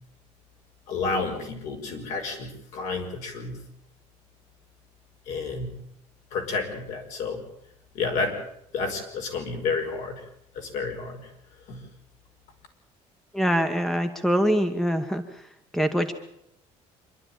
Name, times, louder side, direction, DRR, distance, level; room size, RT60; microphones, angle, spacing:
voice 1, 0.9-3.6 5.3-5.7 6.3-7.4 7.9-8.4 8.7-10.2 10.5-11.2 11.7-11.8, left 4 dB, 70° left, 3 dB, 5.3 m, -30 dB
voice 2, 13.3-15.2 15.7-16.1, equal, 5° left, 8 dB, 1.2 m, -24 dB
26.0 x 12.0 x 9.0 m, 0.75 s
cardioid pair, 150°, 13 cm